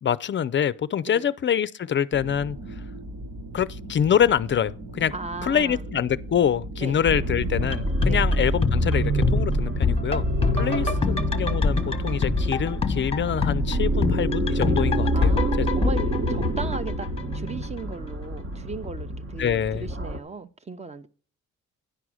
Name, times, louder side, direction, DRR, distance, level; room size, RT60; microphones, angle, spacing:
voice 1, 0.0-2.6 3.5-5.1 5.4-10.2 10.5-15.7 19.4-19.9, left 9 dB, 40° left, 0.5 m, -25 dB
sound 1, 2.1-17.9, right 1 dB, 75° right, 2.0 m, -38 dB
voice 2, 5.1-5.8 6.8-7.0 8.1-8.2 10.6-11.2 15.1-21.1, right 4 dB, 20° right, 0.7 m, -37 dB
sound 2, 7.1-20.2, right 1 dB, 45° right, 1.2 m, -26 dB
sound 3, 7.6-17.5 17.8-17.9, left 4 dB, 20° left, 1.0 m, -27 dB
10.0 x 4.8 x 6.2 m
cardioid pair, 90°, 30 cm